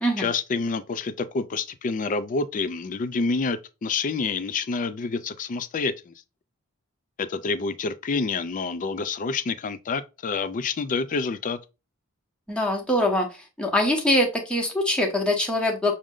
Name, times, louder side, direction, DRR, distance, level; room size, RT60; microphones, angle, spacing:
voice 1, 0.2-6.1 7.2-11.6, left 4 dB, 35° left, 0.4 m, -28 dB
voice 2, 12.5-13.3 13.6-15.9, left 1 dB, 5° left, 0.8 m, -23 dB
6.2 x 2.1 x 3.6 m
head